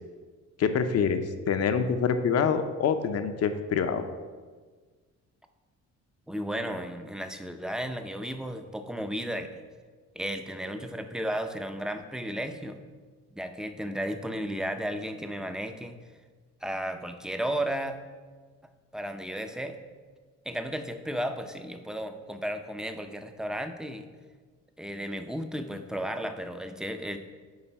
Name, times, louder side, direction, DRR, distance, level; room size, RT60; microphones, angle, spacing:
voice 1, 0.6-4.0, left 6 dB, 55° left, 8 dB, 0.7 m, -26 dB
voice 2, 6.3-9.6 10.1-12.8 13.3-15.9 16.6-18.0 18.9-19.8 20.5-24.1 24.8-27.2, equal, ahead, 7 dB, 0.5 m, -34 dB
8.8 x 3.3 x 5.5 m, 1.5 s
cardioid pair, 90°, 30 cm